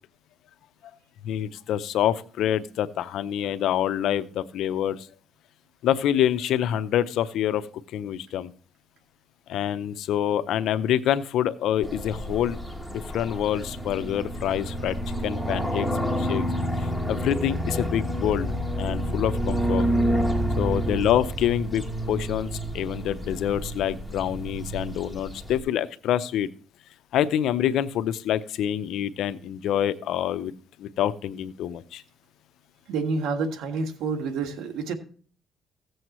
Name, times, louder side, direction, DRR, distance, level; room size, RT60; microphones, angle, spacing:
voice 1, 1.2-5.1 5.8-7.7 7.9-8.5 9.5-12.6 12.9-15.0 15.2-16.4 17.1-19.9 20.6-22.5 22.7-26.5 27.1-30.5 30.8-32.0, left 10 dB, 80° left, 12 dB, 0.6 m, -26 dB
sound 1, 11.8-25.6, equal, ahead, 2.6 m, -29 dB
voice 2, 32.9-34.9, right 4 dB, 85° right, 6 dB, 1.6 m, -28 dB
15.5 x 7.8 x 3.0 m, 0.43 s
cardioid pair, 95°, 0 cm